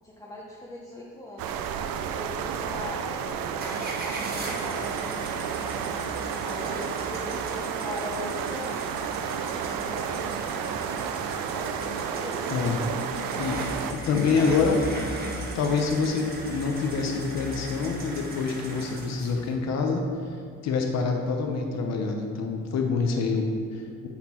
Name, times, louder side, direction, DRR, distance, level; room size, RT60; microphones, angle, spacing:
voice 1, 0.0-5.3 6.4-8.8 9.5-10.5 11.5-13.0 13.4-14.8, left 1 dB, 10° left, -5 dB, 0.7 m, -41 dB
sound 1, 1.4-13.9, right 7 dB, 90° right, 0.6 m, -32 dB
sound 2, 3.6-19.5, right 2 dB, 30° right, 1.3 m, -37 dB
voice 2, 13.4-14.9 15.5-20.0 20.6-24.1, left 4 dB, 50° left, 3 dB, 0.7 m, -26 dB
9.7 x 4.3 x 4.3 m, 2.3 s
cardioid pair, 145°, 33 cm